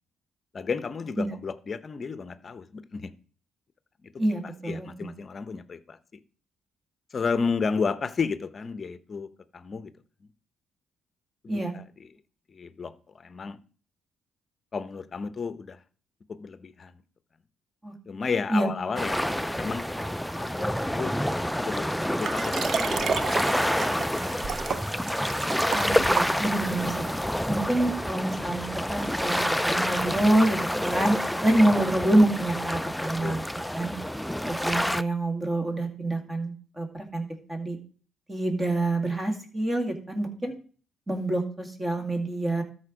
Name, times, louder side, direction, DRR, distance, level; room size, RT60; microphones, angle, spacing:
voice 1, 0.5-3.1 4.0-4.1 4.4-6.0 7.1-9.9 11.4-12.1 12.5-13.6 14.7-15.8 16.3-16.9 18.1-23.0 23.3-24.1 33.2-33.4, left 5 dB, 40° left, 0.7 m, -33 dB
voice 2, 4.2-5.1 11.5-11.7 17.8-17.9 18.5-18.7 25.7-27.0 27.5-31.2 31.4-33.4 33.7-33.9 34.4-37.8 38.3-40.5 41.1-42.6, right 1 dB, 20° right, 2.2 m, -26 dB
sound 1, 19.0-35.0, equal, ahead, 0.3 m, -28 dB
Liquid, 22.2-26.8 27.4-27.5, right 6 dB, 55° right, 0.6 m, -32 dB
13.0 x 4.4 x 5.1 m
cardioid pair, 90°, 0 cm